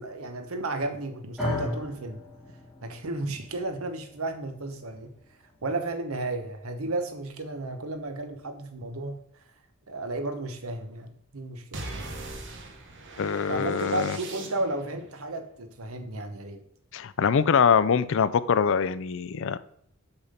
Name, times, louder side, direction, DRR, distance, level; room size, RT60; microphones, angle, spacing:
voice 1, 0.0-2.2 2.8-5.1 5.6-9.2 9.9-11.9 13.5-16.6, right 2 dB, 90° right, 7 dB, 1.0 m, -33 dB
sound 1, 1.4-9.6, left 1 dB, ahead, 2.6 m, -39 dB
sound 2, 11.7-15.0, right 2 dB, 60° right, 1.2 m, -40 dB
voice 2, 13.2-14.2 16.9-19.6, left 6 dB, 65° left, 16 dB, 0.4 m, -23 dB
7.0 x 5.8 x 5.1 m, 0.70 s
head